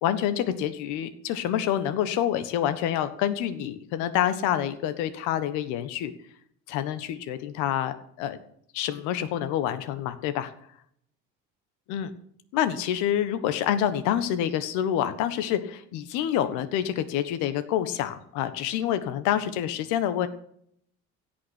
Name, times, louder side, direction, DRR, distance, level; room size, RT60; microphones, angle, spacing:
voice 1, 0.0-6.1 6.7-8.4 8.7-10.5 11.9-12.1 12.5-20.3, left 10 dB, 85° left, 11 dB, 1.5 m, -27 dB
16.5 x 6.0 x 9.9 m, 0.67 s
cardioid pair, 150°, 29 cm